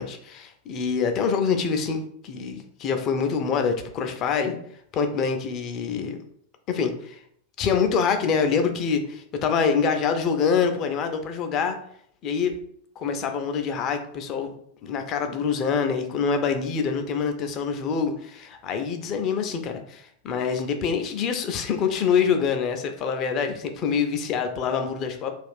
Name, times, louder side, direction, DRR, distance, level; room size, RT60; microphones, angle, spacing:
voice 1, 0.0-4.6 4.9-6.2 6.7-7.2 7.6-11.8 12.2-12.5 13.0-14.5 14.8-25.3, left 6 dB, 35° left, 6 dB, 0.4 m, -25 dB
2.4 x 2.4 x 3.5 m, 0.65 s
figure-of-eight pair, 90°, 0 cm